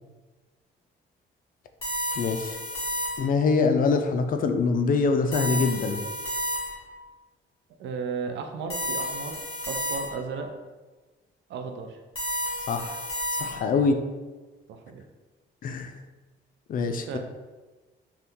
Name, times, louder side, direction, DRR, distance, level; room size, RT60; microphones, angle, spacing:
sound 1, 1.8-3.5 5.3-7.0 8.7-10.4 12.2-13.8, equal, 25° left, 1.0 m, -32 dB
voice 1, 2.2-2.6 3.2-6.0 12.7-13.0 13.3-14.0 15.6-15.9 16.7-17.2, left 4 dB, 45° left, 7 dB, 0.4 m, -24 dB
voice 2, 7.8-9.4 9.7-10.5 11.5-12.0 13.8-14.0 14.7-15.1 16.8-17.2, right 5 dB, 65° right, 5 dB, 0.4 m, -35 dB
2.7 x 2.3 x 3.5 m, 1.3 s
cardioid pair, 90°, 20 cm